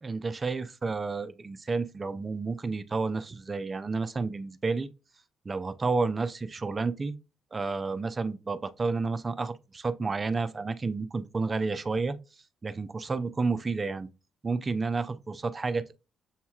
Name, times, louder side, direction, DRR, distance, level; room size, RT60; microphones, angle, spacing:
voice 1, 0.0-4.9 5.5-7.1 7.5-12.2 12.6-14.1 14.4-16.0, right 4 dB, 30° right, 0.4 m, -30 dB
7.2 x 2.8 x 2.3 m
cardioid pair, 90°, 0 cm